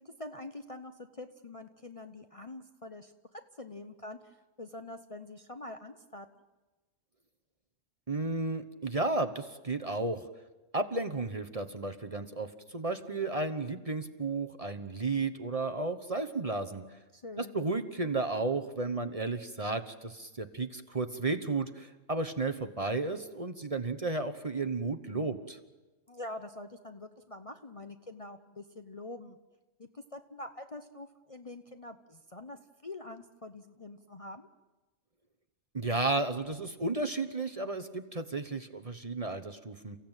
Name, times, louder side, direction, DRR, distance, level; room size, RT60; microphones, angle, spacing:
voice 1, 0.2-6.3 17.1-17.6 26.1-29.4 29.8-34.5, left 2 dB, 30° left, 7 dB, 0.9 m, -45 dB
voice 2, 8.1-10.3 10.7-16.8 17.4-25.6 35.7-40.0, right 3 dB, 30° right, 7 dB, 1.1 m, -33 dB
29.5 x 15.5 x 9.0 m, 1.2 s
omnidirectional pair, 1.3 m